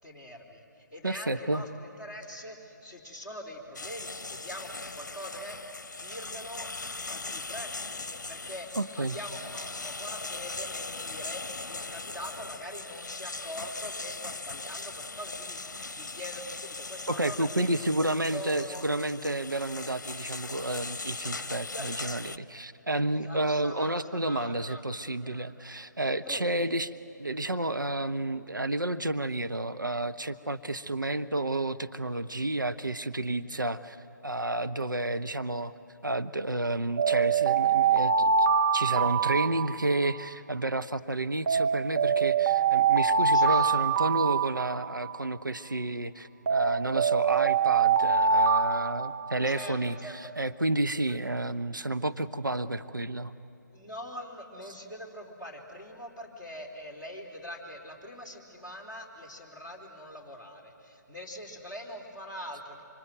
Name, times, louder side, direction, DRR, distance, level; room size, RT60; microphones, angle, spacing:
voice 1, 0.0-5.7 6.0-6.7 7.1-18.9 21.7-21.9 23.2-24.8 25.1-25.6 26.2-26.5 43.3-44.0 49.4-50.2 51.1-51.2 53.7-62.8, left 1 dB, 5° right, -5 dB, 3.3 m, -43 dB
voice 2, 1.0-1.6 8.8-9.2 17.1-26.9 27.2-35.7 36.0-38.5 38.7-53.3, right 2 dB, 80° right, 9 dB, 0.9 m, -31 dB
sound 1, 3.8-22.4, left 3 dB, 60° left, 0.9 m, -39 dB
Alarm, 37.0-40.3 41.5-45.3 46.5-49.7, right 6 dB, 45° right, 0.8 m, -25 dB
26.0 x 25.0 x 9.1 m, 2.9 s
figure-of-eight pair, 145°, 10 cm